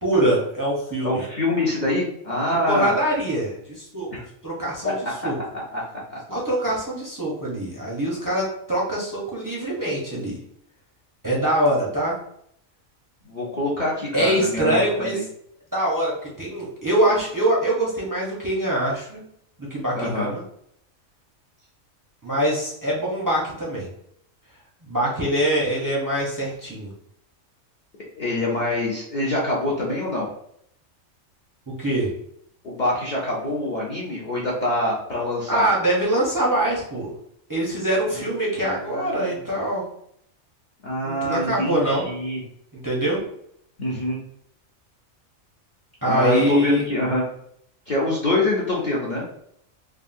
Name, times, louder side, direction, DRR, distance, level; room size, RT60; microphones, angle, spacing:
voice 1, 0.0-1.2 2.7-4.1 4.4-5.0 5.2-5.3 6.3-10.4 11.2-12.2 14.1-15.2 15.7-19.2 19.6-20.4 22.2-23.9 24.8-26.9 31.8-32.1 35.5-37.1 37.5-39.8 41.0-42.0 42.7-43.2 46.0-46.9, right 1 dB, 25° right, -5 dB, 0.4 m, -23 dB
voice 2, 1.0-2.9 4.1-4.2 4.8-4.9 5.5-6.2 13.3-15.2 19.9-20.3 28.2-30.3 32.6-35.7 38.7-39.4 40.8-42.4 43.8-44.2 46.1-47.2 47.9-49.2, left 1 dB, 50° left, -5 dB, 0.5 m, -25 dB
3.5 x 2.0 x 2.5 m, 0.70 s
omnidirectional pair, 1.4 m